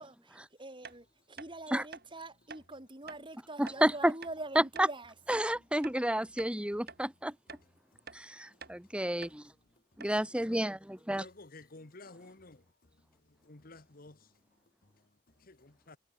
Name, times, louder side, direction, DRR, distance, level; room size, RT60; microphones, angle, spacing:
voice 1, 0.0-5.1, right 2 dB, 25° right, 4.0 m, -44 dB
sound 1, 0.8-1.0 1.4-1.5 1.9-2.1 2.5-2.6 3.1-3.2 3.7-3.8 4.2-4.4 4.8-4.9 5.3-6.0 6.4-6.5 6.9-7.0 7.5-7.7 8.1-8.2 8.6-8.8 9.2-9.4 9.7-9.8 10.0-10.2, right 5 dB, 55° right, 3.5 m, -48 dB
voice 2, 3.6-4.1 4.5-4.9 5.3-7.3 8.1-9.4 10.0-11.3, right 1 dB, 5° right, 1.5 m, -30 dB
voice 3, 11.2-12.6 13.5-14.1 15.5-16.0, left 2 dB, 50° left, 1.5 m, -51 dB
head